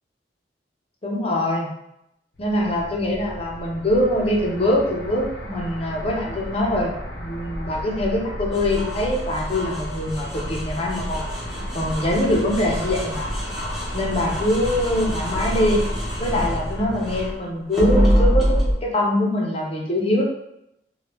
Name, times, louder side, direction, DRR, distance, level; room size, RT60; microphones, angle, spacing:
voice 1, 1.0-1.7 2.4-11.3 11.7-13.3 13.9-15.8 16.2-20.2, left 1 dB, 35° left, -1 dB, 0.6 m, -23 dB
sound 1, 2.3-17.3, equal, 85° left, 0.7 m, -33 dB
sound 2, 8.5-17.3 17.7-18.7, equal, 5° right, 0.8 m, -25 dB
3.2 x 2.2 x 3.0 m, 0.81 s
head